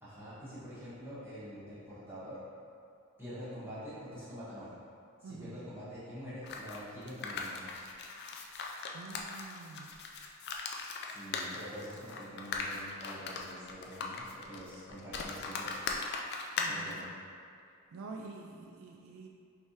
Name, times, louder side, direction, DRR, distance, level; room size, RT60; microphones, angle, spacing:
voice 1, 0.0-2.4 3.2-4.7 5.2-7.7 11.1-15.8 16.6-17.1, equal, 10° right, -13 dB, 1.5 m, -46 dB
voice 2, 5.2-5.6 8.9-9.9 16.6-17.1 17.9-19.3, right 3 dB, 70° right, 1 dB, 0.3 m, -47 dB
sound 1, 6.4-17.0, left 4 dB, 50° left, 0.3 m, -39 dB
4.6 x 3.3 x 2.8 m, 2.3 s
head